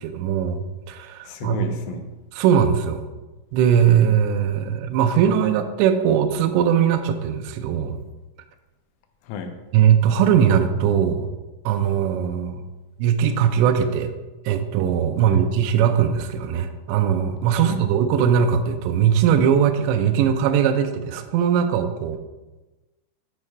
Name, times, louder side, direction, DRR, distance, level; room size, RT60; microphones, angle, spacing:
voice 1, 0.0-1.7 2.3-3.1 3.5-8.0 9.7-11.3 11.7-12.7 13.0-14.1 14.5-22.2, right 8 dB, 85° right, 7 dB, 2.5 m, -20 dB
voice 2, 1.2-2.0 9.2-9.6 15.3-15.4 17.6-17.8, left 5 dB, 85° left, 6 dB, 3.2 m, -33 dB
8.3 x 3.2 x 4.5 m, 1.1 s
omnidirectional pair, 5.6 m